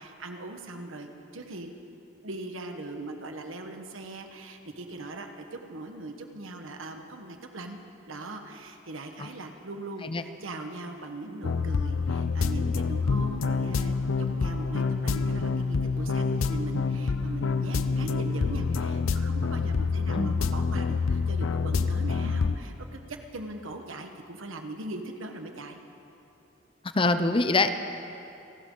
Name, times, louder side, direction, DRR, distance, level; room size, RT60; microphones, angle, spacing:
voice 1, 0.0-1.7 2.2-7.8 8.1-25.8, right 2 dB, 80° right, 5 dB, 1.4 m, -40 dB
sound 1, 11.4-22.6, left 4 dB, 90° left, 0.5 m, -27 dB
voice 2, 26.9-27.8, left 3 dB, 25° left, 10 dB, 0.6 m, -24 dB
29.0 x 12.5 x 3.9 m, 2.8 s
head